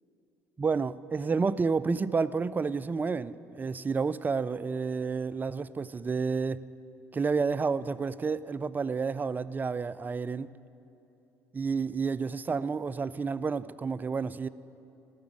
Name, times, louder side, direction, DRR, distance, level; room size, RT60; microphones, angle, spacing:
voice 1, 0.6-6.6 7.1-10.5 11.5-14.5, right 5 dB, 25° right, 18 dB, 0.4 m, -30 dB
14.0 x 6.1 x 9.5 m, 2.9 s
supercardioid pair, 65°, 7 cm